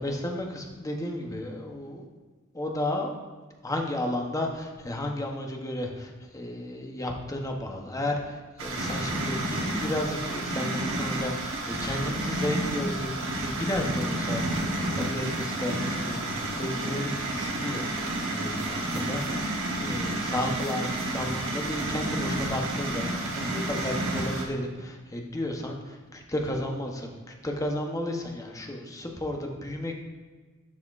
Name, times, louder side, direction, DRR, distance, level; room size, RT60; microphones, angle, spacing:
voice 1, 0.0-2.0 2.5-3.1 3.6-14.6 14.9-17.9 18.3-19.2 19.8-29.9, left 1 dB, 15° left, 2 dB, 0.8 m, -33 dB
sound 1, 8.6-24.4, right 1 dB, 65° right, 1.1 m, -30 dB
11.5 x 4.2 x 2.4 m, 1.4 s
head